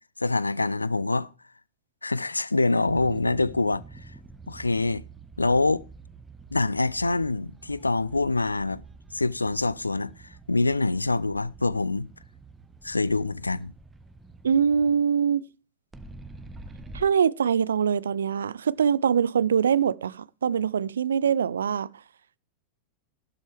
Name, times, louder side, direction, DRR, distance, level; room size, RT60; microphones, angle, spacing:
voice 1, 0.2-1.3 2.0-3.8 4.5-5.0 5.4-5.8 6.5-8.8 9.1-10.1 10.5-12.1 12.8-13.7, left 3 dB, 80° left, 0.5 m, -25 dB
sound 1, 2.9-14.9 15.9-17.0, right 3 dB, 15° right, 1.3 m, -47 dB
voice 2, 14.4-15.5 16.9-21.9, right 7 dB, 70° right, 0.5 m, -23 dB
16.0 x 12.0 x 3.4 m
figure-of-eight pair, 90°, 0 cm